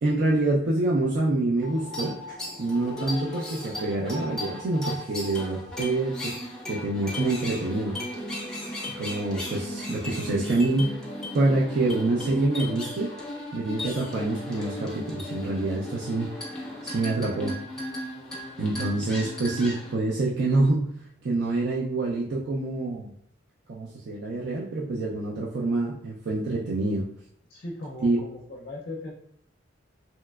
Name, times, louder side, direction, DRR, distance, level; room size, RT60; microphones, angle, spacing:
voice 1, 0.0-6.4 6.7-8.0 9.0-11.0 11.3-13.2 13.5-16.6 16.8-17.6 18.6-20.9 21.2-23.1 23.7-27.1 28.0-28.2, right 2 dB, 60° right, -4 dB, 0.4 m, -26 dB
sound 1, 1.6-20.0, left 1 dB, 5° left, 0.6 m, -36 dB
voice 2, 27.5-29.1, left 1 dB, 50° left, -2 dB, 0.5 m, -38 dB
3.1 x 2.9 x 2.3 m, 0.66 s
head